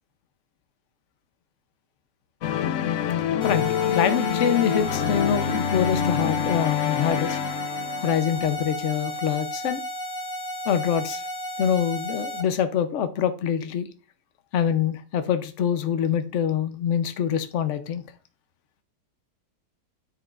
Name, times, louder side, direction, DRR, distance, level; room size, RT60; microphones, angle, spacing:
sound 1, 2.4-8.6, left 9 dB, 85° left, 0.6 m, -26 dB
voice 1, 3.4-7.4 8.0-9.8 10.7-11.2 11.6-13.9 14.5-18.0, left 8 dB, 55° left, 9 dB, 0.8 m, -25 dB
sound 2, 3.4-12.4, equal, 40° left, 1.2 m, -33 dB
9.7 x 7.4 x 2.5 m, 0.35 s
omnidirectional pair, 2.0 m